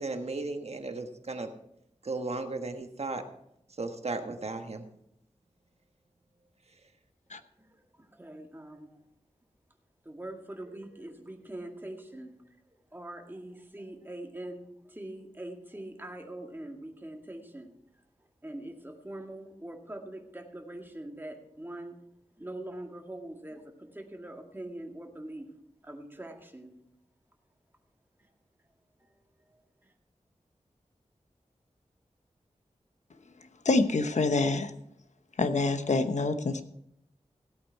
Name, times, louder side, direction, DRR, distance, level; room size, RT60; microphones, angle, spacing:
voice 1, 0.0-1.5 2.0-3.2 3.8-4.8, right 3 dB, 60° right, 6 dB, 1.3 m, -35 dB
voice 2, 7.6-9.0 10.0-17.7 18.4-22.0 22.4-25.5 25.8-26.7 29.0-29.1 29.8-29.9, right 1 dB, 15° right, 2 dB, 1.9 m, -43 dB
voice 3, 33.6-34.7 35.4-36.6, left 3 dB, 75° left, 9 dB, 1.0 m, -26 dB
16.0 x 8.5 x 4.6 m, 0.76 s
wide cardioid pair, 90°, 12 cm